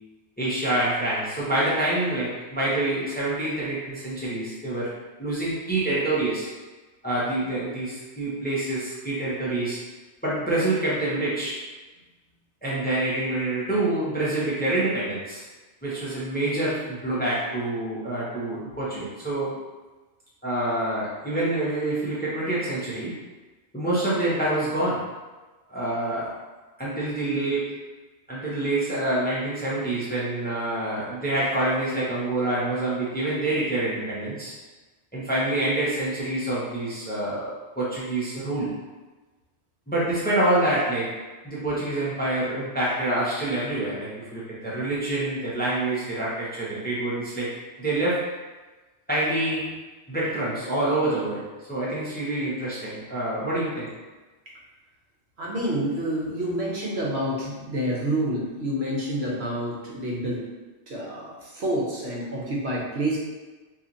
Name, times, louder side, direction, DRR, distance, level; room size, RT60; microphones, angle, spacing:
voice 1, 0.4-4.9 5.2-6.5 7.0-9.8 10.2-11.6 12.6-15.4 15.8-19.5 20.4-23.1 23.7-25.1 25.7-26.4 26.8-27.8 28.3-34.5 35.1-38.7 39.9-41.1 41.4-47.5 47.8-48.2 49.1-49.8 50.1-53.9, right 1 dB, 10° left, -8 dB, 0.6 m, -26 dB
voice 2, 55.4-60.4 60.9-63.2, right 1 dB, 70° right, -4 dB, 1.1 m, -28 dB
2.9 x 2.4 x 3.8 m, 1.2 s
omnidirectional pair, 1.1 m